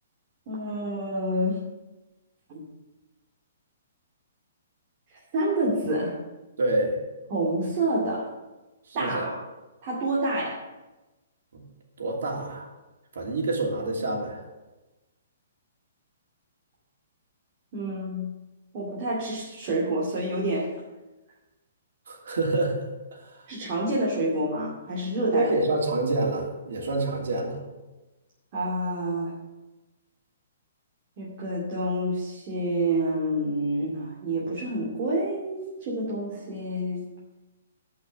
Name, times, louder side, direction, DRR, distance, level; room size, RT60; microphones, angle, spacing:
voice 1, 0.5-1.6 2.5-2.6 5.1-6.2 7.3-8.3 8.9-9.4 9.8-10.6 17.7-18.3 18.7-20.8 23.5-25.5 28.5-29.3 31.2-37.1, right 1 dB, 30° right, -5 dB, 2.4 m, -28 dB
voice 2, 6.6-7.0 8.9-9.3 11.5-11.6 12.0-12.7 13.1-14.4 22.1-22.8 23.2-23.4 25.3-27.6, right 2 dB, 70° right, -1 dB, 3.0 m, -27 dB
11.0 x 5.7 x 7.7 m, 1.1 s
hypercardioid pair, 170°, 0 cm